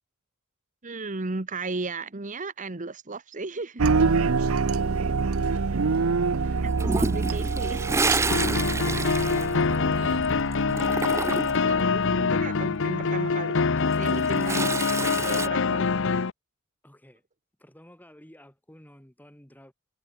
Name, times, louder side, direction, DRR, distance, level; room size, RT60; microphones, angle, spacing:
voice 1, 0.8-4.0 6.4-7.9 11.6-13.6 14.0-15.9, right 3 dB, 35° right, 1.1 m, -35 dB
sound 1, 3.8-13.0, right 4 dB, 80° right, 0.7 m, -27 dB
voice 2, 4.7-6.7 16.8-17.2 17.6-19.7, left 1 dB, 10° left, 3.9 m, -54 dB
Toilet flush, 6.8-10.3 10.5-11.7 13.7-15.5, right 3 dB, 15° right, 0.4 m, -29 dB
sound 2, 8.3-16.3, left 4 dB, 65° left, 0.8 m, -25 dB
head